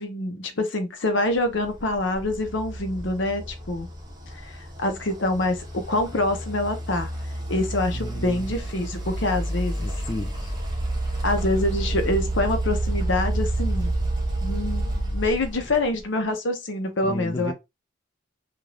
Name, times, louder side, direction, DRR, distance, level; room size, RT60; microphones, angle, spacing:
voice 1, 0.0-3.9 4.4-7.1 7.5-9.7 11.2-14.0 14.4-17.5, left 2 dB, 70° left, 0.7 m, -26 dB
sound 1, 1.6-16.0, right 1 dB, 20° right, 0.8 m, -29 dB
voice 2, 7.9-8.5 9.8-10.5 17.0-17.5, left 2 dB, 20° left, 0.3 m, -33 dB
2.6 x 2.4 x 3.2 m
head